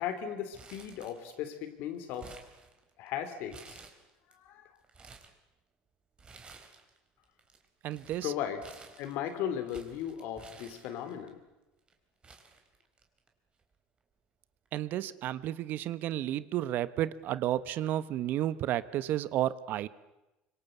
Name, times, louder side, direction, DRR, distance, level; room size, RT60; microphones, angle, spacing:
voice 1, 0.0-2.3 3.0-3.8 4.3-4.8 8.2-8.6 9.0-11.4, left 9 dB, 70° left, 9 dB, 3.6 m, -37 dB
Crumpling crinkling, 0.5-1.5 1.8-3.1 3.5-4.3 4.8-5.4 6.2-7.0 7.2-11.3 11.9-12.0 12.2-13.3 13.6-13.7 14.7-14.9, right 4 dB, 25° right, 4.1 m, -53 dB
voice 2, 7.8-8.3 14.7-19.9, right 13 dB, 60° right, 16 dB, 1.1 m, -32 dB
25.0 x 24.0 x 8.2 m, 0.99 s
supercardioid pair, 110°, 4 cm